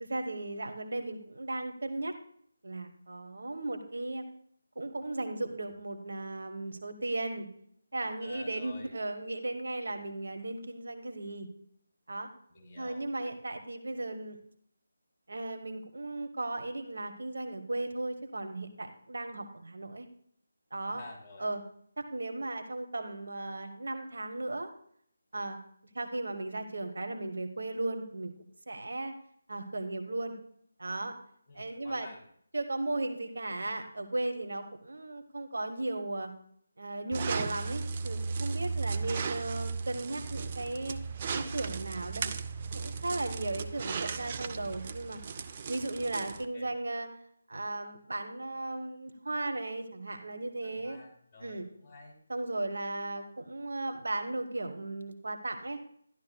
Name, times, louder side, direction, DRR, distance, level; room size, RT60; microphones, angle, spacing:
voice 1, 0.1-2.1 2.6-4.2 4.8-7.5 7.9-11.5 12.1-12.3 12.8-14.4 15.3-20.1 20.7-21.0 21.4-21.6 22.1-24.7 25.3-25.6 25.9-28.3 28.7-29.1 29.5-30.3 30.8-31.1 31.5-32.1 32.5-36.3 36.8-41.0 41.3-42.3 42.7-45.2 45.7-47.1 47.5-51.0 51.4-51.7 52.3-55.8, right 2 dB, 65° right, 6 dB, 1.1 m, -36 dB
voice 2, 8.2-8.9 12.5-13.1 20.9-21.5 31.5-32.2 45.6-45.7 46.0-46.7 50.6-52.2, left 2 dB, 15° left, -1 dB, 3.2 m, -51 dB
sound 1, 37.1-46.4, right 5 dB, 30° right, 0.5 m, -36 dB
13.0 x 11.0 x 2.3 m, 0.64 s
figure-of-eight pair, 155°, 0 cm